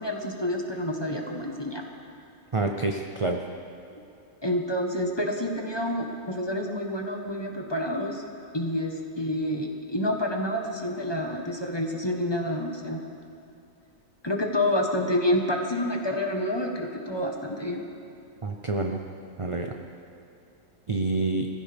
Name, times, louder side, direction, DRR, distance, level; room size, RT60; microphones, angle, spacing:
voice 1, 0.0-1.8 4.4-8.2 8.5-13.0 14.2-17.9, left 1 dB, 20° left, 1 dB, 1.1 m, -28 dB
voice 2, 2.5-3.4 18.4-19.0 19.4-19.7 20.9-21.5, right 3 dB, 35° right, 3 dB, 0.5 m, -27 dB
21.5 x 15.5 x 3.5 m, 2.7 s
omnidirectional pair, 1.4 m